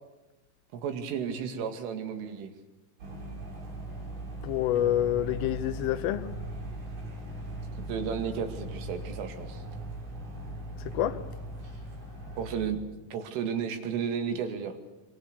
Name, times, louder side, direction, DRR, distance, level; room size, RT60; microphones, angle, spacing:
voice 1, 0.7-2.5 7.9-9.6 12.4-12.8 13.1-14.8, right 7 dB, 85° right, 4.7 m, -33 dB
sound 1, 3.0-12.7, right 1 dB, 45° right, 6.5 m, -39 dB
voice 2, 4.4-6.3 10.9-11.2, left 12 dB, 85° left, 3.6 m, -27 dB
26.0 x 23.0 x 6.9 m
omnidirectional pair, 5.6 m